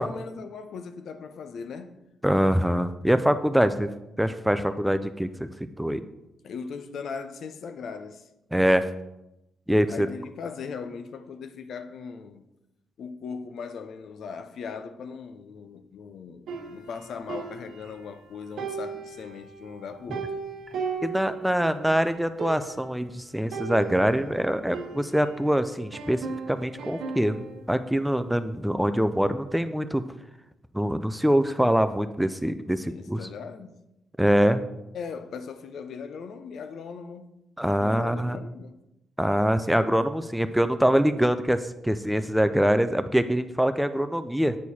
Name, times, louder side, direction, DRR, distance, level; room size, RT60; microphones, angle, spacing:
voice 1, 0.0-2.0 6.4-8.3 9.9-12.5 13.0-20.3 32.9-33.8 34.9-37.4 37.8-38.8, left 5 dB, 70° left, 0.6 m, -39 dB
voice 2, 2.2-3.9 4.2-5.3 5.8-6.0 8.5-8.9 9.7-10.1 21.0-30.0 30.7-33.2 34.2-34.6 37.6-38.4 39.2-44.6, equal, ahead, 0.4 m, -24 dB
sound 1, 16.5-18.2 18.6-21.9 22.1-22.2 22.4-23.0 23.5-25.5 25.9-27.6, right 5 dB, 75° right, 0.9 m, -37 dB
8.3 x 4.6 x 4.2 m
cardioid pair, 105°, 0 cm